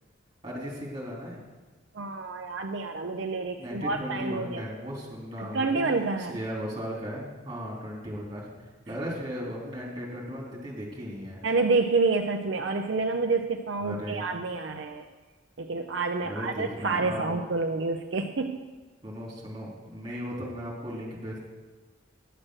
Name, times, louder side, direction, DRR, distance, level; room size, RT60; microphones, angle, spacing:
voice 1, 0.4-1.4 3.6-5.9 6.3-11.4 13.8-14.3 16.2-17.4 19.0-21.5, equal, 25° right, -3 dB, 3.1 m, -36 dB
voice 2, 1.9-4.6 5.4-6.4 11.4-15.0 15.6-18.6 20.1-20.2, right 3 dB, 70° right, 4 dB, 0.6 m, -28 dB
10.0 x 7.5 x 6.4 m, 1.3 s
head